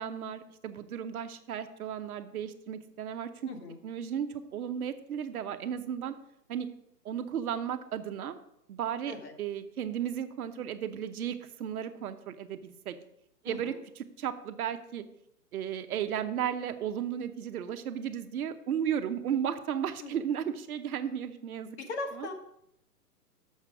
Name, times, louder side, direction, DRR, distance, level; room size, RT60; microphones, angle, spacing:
voice 1, 0.0-3.5 3.8-6.1 6.5-6.7 7.0-8.4 8.7-12.9 13.4-15.0 15.5-21.8 22.1-22.3, right 9 dB, 60° right, 8 dB, 0.9 m, -34 dB
voice 2, 3.5-3.8 9.1-9.3 13.5-13.7 20.0-20.1 21.8-22.3, left 3 dB, 45° left, 4 dB, 1.4 m, -38 dB
6.8 x 6.5 x 4.8 m, 0.75 s
hypercardioid pair, 140°, 48 cm